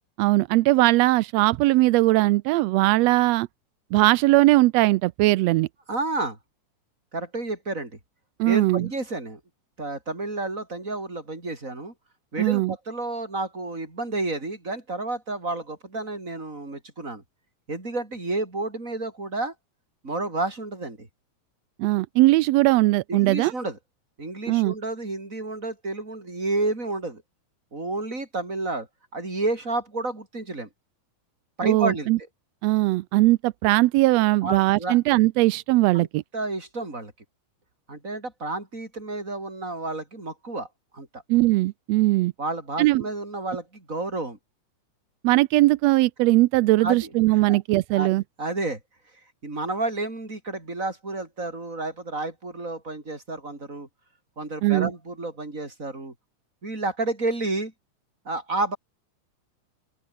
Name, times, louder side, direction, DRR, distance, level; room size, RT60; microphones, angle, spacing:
voice 1, 0.2-3.5 3.9-5.7 8.4-8.9 12.4-12.7 21.8-23.5 24.5-24.7 31.6-32.2 32.6-36.2 41.3-42.3 42.8-43.0 45.2-48.2 54.6-54.9, right 18 dB, 85° right, 1.5 m, -20 dB
voice 2, 5.9-6.4 7.1-8.0 8.4-9.4 9.8-11.9 12.3-17.2 17.7-19.5 20.0-21.1 23.1-23.8 24.2-27.2 27.7-28.9 29.1-30.7 31.6-32.1 34.4-35.0 35.9-36.1 36.3-37.1 37.9-40.7 40.9-41.2 42.4-44.4 46.8-47.1 47.5-47.6 47.9-48.1 48.4-48.8 49.4-53.9 54.4-56.1 56.6-57.7 58.3-58.8, right 2 dB, 25° right, 5.8 m, -30 dB
open air
omnidirectional pair, 3.6 m